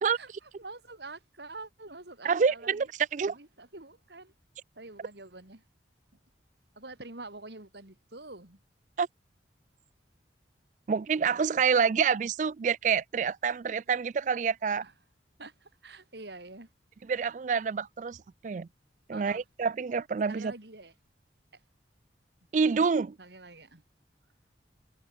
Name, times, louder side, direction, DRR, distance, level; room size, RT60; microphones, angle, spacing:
voice 1, 0.1-2.9 3.3-4.3 4.7-5.6 6.7-8.6 14.8-14.9 15.4-16.7 19.1-19.4 20.3-20.9 23.2-23.8, right 2 dB, 70° right, 3.2 m, -46 dB
voice 2, 2.2-2.9 3.1-3.4 9.0-9.1 10.9-14.9 17.1-18.2 18.4-18.7 19.1-20.5 22.5-23.2, right 6 dB, 40° right, 0.3 m, -27 dB
head